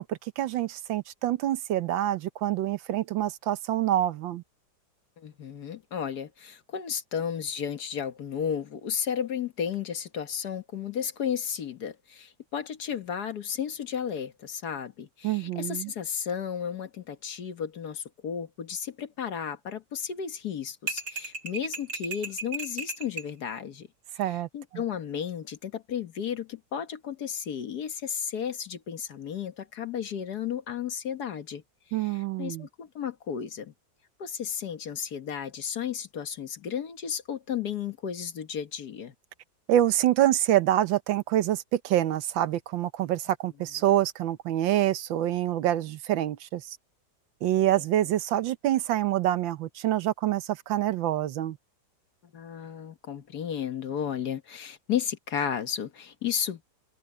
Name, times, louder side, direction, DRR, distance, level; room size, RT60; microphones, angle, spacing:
voice 1, 0.0-4.4 15.2-15.9 24.2-24.8 31.9-32.7 39.7-46.8 47.4-51.6, right 13 dB, 85° right, 1.6 m, -26 dB
voice 2, 5.2-23.9 24.2-31.6 32.0-33.7 34.2-39.1 47.6-47.8 52.3-56.6, left 8 dB, 60° left, 1.7 m, -33 dB
sound 1, 20.9-23.3, right 3 dB, 60° right, 3.8 m, -35 dB
omnidirectional pair, 2.0 m